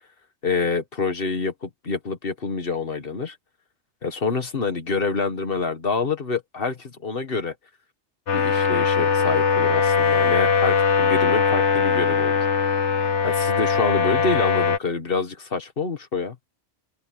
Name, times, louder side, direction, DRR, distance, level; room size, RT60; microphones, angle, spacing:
voice 1, 0.4-3.4 4.0-7.6 8.3-12.4 13.2-16.4, left 4 dB, 50° left, 1.9 m, -27 dB
sound 1, 8.3-14.8, left 6 dB, 75° left, 1.6 m, -20 dB
open air
omnidirectional pair, 1.2 m